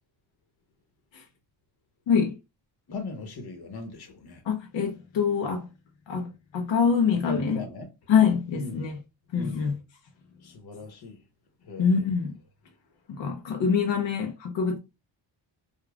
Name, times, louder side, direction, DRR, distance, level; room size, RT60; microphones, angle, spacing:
voice 1, 2.9-4.4 7.2-7.9 8.5-8.9 9.3-9.6 10.4-11.2 11.7-11.9, left 2 dB, 55° left, 1.1 m, -38 dB
voice 2, 4.4-5.7 6.1-7.6 8.1-9.0 9.3-9.8 11.8-12.4 13.1-14.8, left 6 dB, 80° left, 0.8 m, -25 dB
5.0 x 2.4 x 2.3 m
wide cardioid pair, 140°, 44 cm